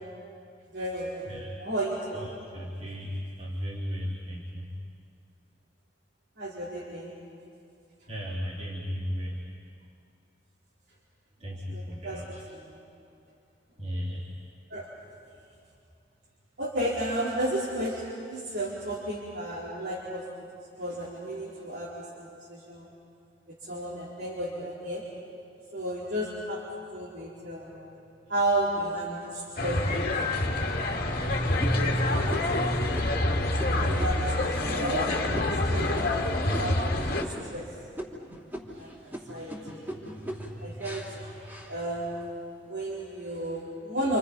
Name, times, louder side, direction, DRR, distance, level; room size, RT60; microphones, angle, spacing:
voice 1, 0.7-2.2 6.4-7.1 11.4-12.8 14.7-14.9 16.6-20.3 20.8-22.9 23.6-25.0 25.7-27.8 28.3-30.7 31.8-33.1 33.7-37.7 38.8-39.8 40.6-41.1 41.7-42.3 42.7-44.2, right 1 dB, 80° right, -8 dB, 4.5 m, -33 dB
voice 2, 2.1-4.7 8.1-9.4 11.4-12.4 13.8-14.2 38.7-40.8 41.1-41.6, equal, 35° right, -6 dB, 3.2 m, -37 dB
sound 1, 28.8-29.6 30.2-30.3 30.8-31.1 31.6-36.9 37.2-37.7 38.0-42.3 42.8-43.3, equal, 10° right, 2.9 m, -41 dB
sound 2, 29.6-37.2, left 1 dB, 55° left, 2.1 m, -27 dB
Meow, 29.8-30.5 31.3-31.4 31.9-32.0 36.0-36.1, left 6 dB, 35° left, 1.1 m, -35 dB
28.5 x 28.0 x 5.6 m, 2.4 s
head